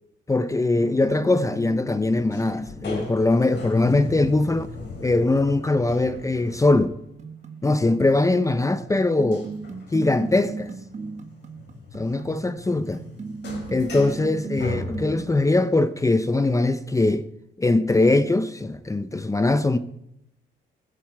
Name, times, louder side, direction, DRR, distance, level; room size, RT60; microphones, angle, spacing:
voice 1, 0.3-4.7 5.0-6.9 7.6-9.5 9.9-10.7 11.9-13.0 13.7-17.2 17.6-19.8, left 2 dB, 15° left, 0.7 m, -21 dB
sound 1, 0.7-7.1 9.3-15.4, left 3 dB, 60° left, 5.4 m, -36 dB
sound 2, 7.2-15.7, right 4 dB, 35° right, 1.7 m, -37 dB
16.5 x 15.0 x 4.8 m
cardioid pair, 90°, 20 cm